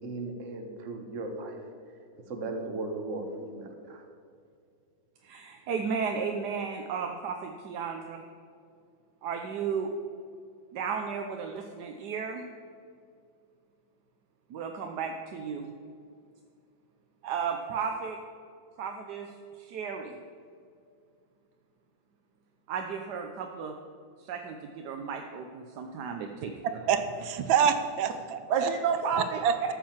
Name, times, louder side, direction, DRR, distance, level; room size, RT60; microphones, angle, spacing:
voice 1, 0.0-1.6 2.3-4.0, right 2 dB, 45° right, 4 dB, 1.6 m, -37 dB
voice 2, 5.2-8.2 9.2-9.9 10.7-12.5 14.5-15.7 17.2-18.2 18.8-19.3 19.6-20.1 22.7-23.7 24.2-26.5 28.5-29.4, right 6 dB, 65° right, 4 dB, 1.3 m, -33 dB
voice 3, 26.9-28.7 29.2-29.7, right 7 dB, 80° right, 9 dB, 1.5 m, -27 dB
13.0 x 7.4 x 7.3 m, 2.3 s
omnidirectional pair, 2.1 m